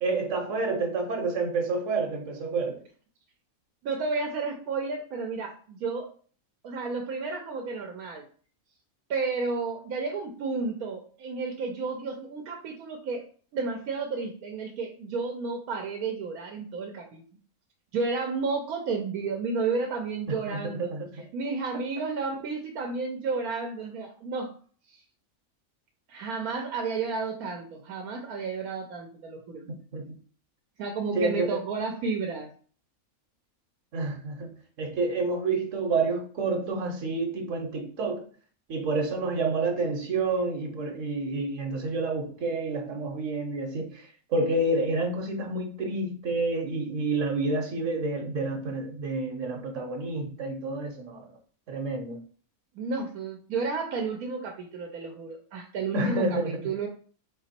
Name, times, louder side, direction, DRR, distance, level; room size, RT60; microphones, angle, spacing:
voice 1, 0.0-2.8 20.3-21.1 29.9-30.1 31.1-31.6 33.9-34.5 34.8-38.3 38.7-51.2 51.7-52.2 55.9-56.6, right 3 dB, 60° right, 1.3 m, -29 dB
voice 2, 3.8-6.1 6.6-8.3 9.1-13.3 13.5-17.2 17.9-20.9 21.3-24.5 24.9-25.0 26.1-29.7 30.8-32.5 52.7-56.9, right 4 dB, 80° right, 1.2 m, -32 dB
4.2 x 2.9 x 4.3 m
omnidirectional pair, 1.5 m